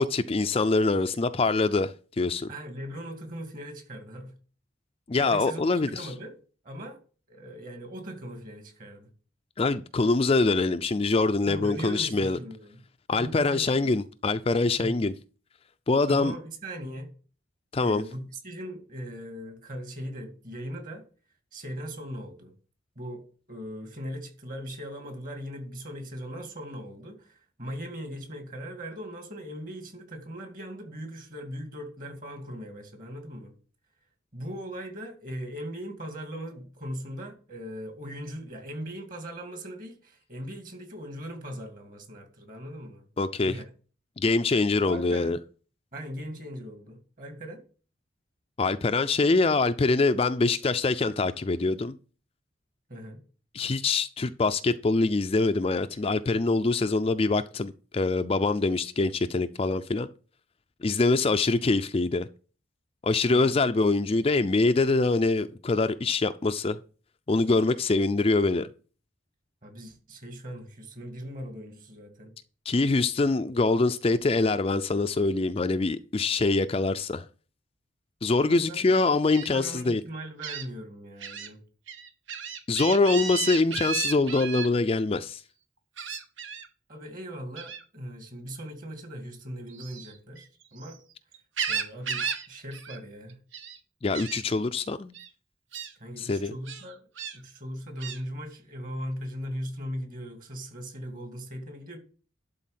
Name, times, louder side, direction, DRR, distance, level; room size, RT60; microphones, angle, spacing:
voice 1, 0.0-2.5 5.1-6.1 9.6-12.4 13.1-15.1 15.9-16.3 17.7-18.0 43.2-43.5 44.2-45.4 48.6-52.0 53.5-60.1 60.8-62.3 63.0-66.8 67.3-68.7 72.7-77.3 78.2-80.0 82.7-85.4 94.0-95.1 96.2-96.5, left 3 dB, 30° left, 0.4 m, -24 dB
voice 2, 2.5-4.4 5.1-6.3 6.6-7.0 7.3-9.1 11.5-12.8 13.1-13.9 14.8-15.0 16.1-17.1 17.8-21.0 21.5-22.5 23.0-33.5 34.3-43.0 43.4-43.6 44.8-45.4 45.9-47.6 52.9-53.2 63.3-63.6 69.6-72.3 78.5-79.0 79.5-81.6 86.9-91.0 91.7-93.4 96.0-97.0 97.3-102.0, equal, 45° right, 2.4 m, -39 dB
Gull seagull, 79.3-79.5 80.4-80.6 81.2-81.5 81.9-84.7 86.0-86.7 87.6-87.8 89.7-90.9 91.3-92.5 92.7-93.0 93.3-93.8 94.1-94.4 95.1-95.3 95.7-95.9 96.7-97.4 98.0-98.2, right 7 dB, 75° right, 1.2 m, -34 dB
11.5 x 4.2 x 7.4 m
head